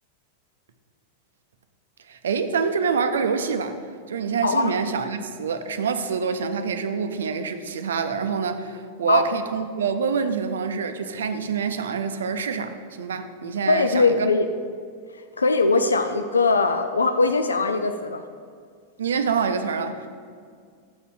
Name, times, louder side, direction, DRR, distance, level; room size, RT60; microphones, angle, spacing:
voice 1, 2.1-3.8 4.1-14.3 19.0-20.1, right 5 dB, 65° right, 8 dB, 0.5 m, -26 dB
voice 2, 4.4-4.7 9.1-9.2 13.7-14.5 15.4-18.2, left 3 dB, 75° left, 7 dB, 0.3 m, -21 dB
6.8 x 4.1 x 6.1 m, 2.1 s
figure-of-eight pair, 90°, 0 cm